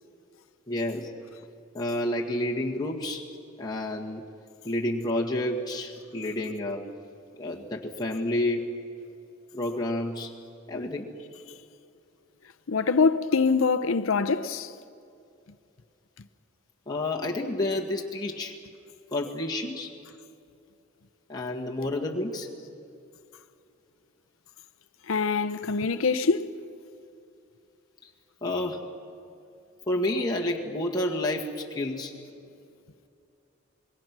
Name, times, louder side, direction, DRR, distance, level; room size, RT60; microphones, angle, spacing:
voice 1, 0.7-1.1 1.7-3.2 3.6-4.2 4.6-6.8 7.4-8.7 9.5-10.3 10.7-11.1 16.9-18.5 19.1-19.9 21.3-22.5 28.0-28.1 28.4-28.8 29.9-32.1, left 1 dB, 20° left, 1.7 m, -29 dB
voice 2, 12.7-14.7 25.1-26.5, left 4 dB, 70° left, 0.7 m, -24 dB
26.0 x 21.5 x 6.1 m
head